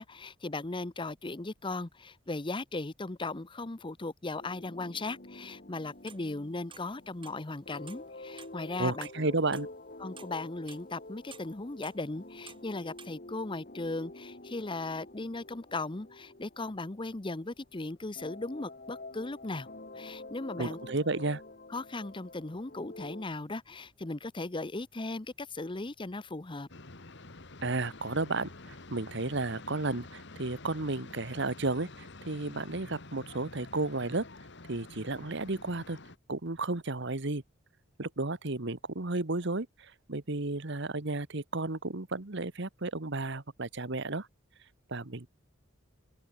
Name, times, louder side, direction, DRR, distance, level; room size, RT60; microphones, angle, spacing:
voice 1, 0.0-9.1 10.0-19.7 19.9-20.8 21.7-26.7, left 2 dB, 25° left, 0.8 m, -37 dB
sound 1, 4.4-17.7 18.2-23.3, left 2 dB, 45° left, 3.0 m, -48 dB
sound 2, 6.0-7.0 7.2-8.5 8.9-11.0 11.3-13.1, right 7 dB, 25° right, 1.8 m, -52 dB
voice 2, 8.8-9.7 20.6-21.4 27.6-34.3 34.7-36.0 36.3-37.4 38.0-44.3 44.9-45.3, right 2 dB, 60° right, 1.5 m, -33 dB
sound 3, 26.7-36.2, left 2 dB, 60° left, 2.2 m, -49 dB
open air
head